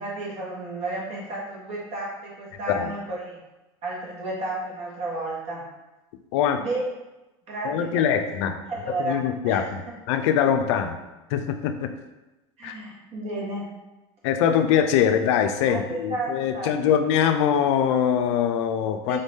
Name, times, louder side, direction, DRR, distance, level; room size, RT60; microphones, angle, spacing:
voice 1, 0.0-3.4 3.8-5.6 6.6-6.8 7.5-8.1 8.7-9.9 12.6-13.7 15.0-15.1 15.7-16.9 19.0-19.2, right 2 dB, 45° right, -4 dB, 1.4 m, -32 dB
voice 2, 7.6-8.6 9.1-9.8 10.1-11.0 11.3-11.9 12.6-12.7 14.2-19.2, left 8 dB, 75° left, 7 dB, 0.4 m, -23 dB
3.8 x 2.6 x 3.5 m, 1.0 s
supercardioid pair, 105°, 15 cm